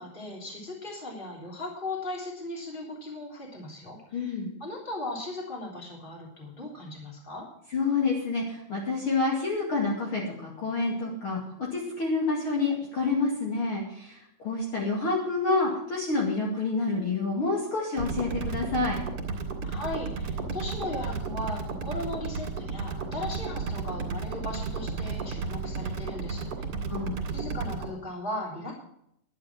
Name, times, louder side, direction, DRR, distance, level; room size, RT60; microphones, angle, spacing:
voice 1, 0.0-4.3 4.6-7.4 19.6-26.5 27.3-28.7, left 1 dB, 15° left, -2 dB, 3.4 m, -37 dB
voice 2, 4.1-4.5 7.7-14.1 14.4-19.0 26.9-27.1, left 3 dB, 50° left, -3 dB, 3.0 m, -28 dB
sound 1, 18.0-27.9, right 4 dB, 65° right, 3.1 m, -33 dB
11.0 x 10.0 x 6.1 m, 0.74 s
omnidirectional pair, 3.3 m